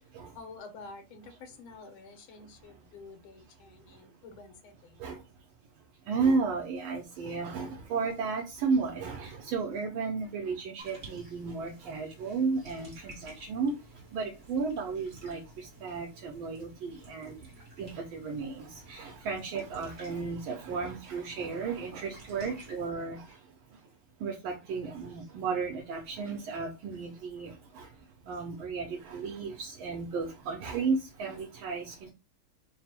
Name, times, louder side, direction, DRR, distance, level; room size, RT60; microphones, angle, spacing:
voice 1, 0.0-5.0, left 4 dB, 80° left, 1.6 m, -49 dB
voice 2, 5.7-23.9 24.2-32.1, right 4 dB, 80° right, 1.5 m, -34 dB
sound 1, 10.8-22.9, right 2 dB, 35° right, 0.9 m, -53 dB
3.9 x 2.0 x 4.2 m
omnidirectional pair, 2.2 m